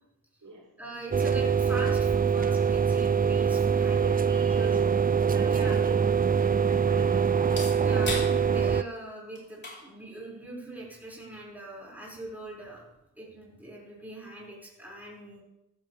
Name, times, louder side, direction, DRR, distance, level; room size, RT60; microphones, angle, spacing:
voice 1, 0.8-4.1 4.5-4.8 5.4-5.8 7.8-12.8 13.2-15.4, right 1 dB, 5° right, -5 dB, 6.1 m, -41 dB
sound 1, 1.1-8.8, right 6 dB, 25° right, 0.4 m, -24 dB
voice 2, 4.0-5.0 5.3-6.1 6.3-7.6, right 3 dB, 55° right, -7 dB, 6.0 m, -40 dB
sound 2, 7.3-13.0, left 1 dB, 30° left, 4.4 m, -44 dB
15.5 x 14.5 x 3.5 m, 0.92 s
wide cardioid pair, 85°, 36 cm